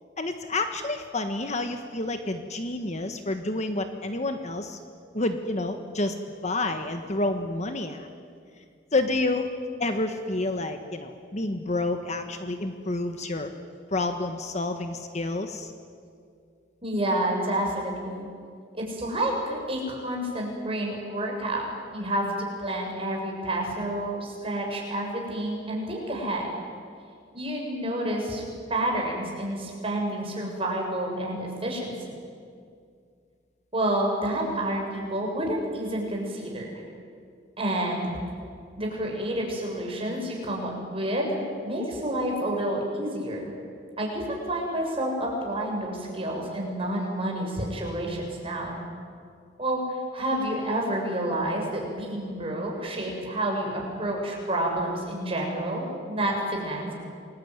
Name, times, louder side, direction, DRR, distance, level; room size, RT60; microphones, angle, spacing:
voice 1, 0.2-4.8 5.1-6.2 6.4-8.1 8.9-9.5 9.8-13.5 13.9-15.7, left 2 dB, 40° left, 7 dB, 1.5 m, -29 dB
voice 2, 16.8-18.3 18.7-21.6 21.9-26.5 27.3-28.4 28.7-32.1 33.7-36.8 37.6-38.2 38.8-43.4 44.0-48.8 49.6-56.9, right 1 dB, 30° right, 0 dB, 6.7 m, -29 dB
28.0 x 21.0 x 9.6 m, 2.3 s
head